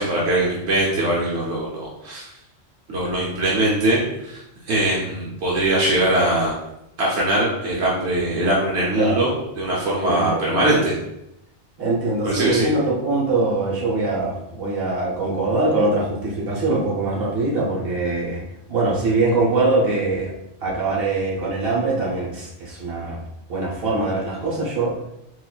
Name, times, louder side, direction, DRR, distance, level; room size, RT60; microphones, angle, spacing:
voice 1, 0.0-2.2 2.9-6.5 7.0-11.0 12.2-12.7, right 1 dB, 80° right, -5 dB, 1.0 m, -21 dB
voice 2, 10.0-10.8 11.8-18.4 18.7-20.3 20.6-23.2 23.5-24.9, right 3 dB, 60° right, -5 dB, 1.2 m, -23 dB
3.9 x 2.4 x 2.3 m, 0.85 s
omnidirectional pair, 1.1 m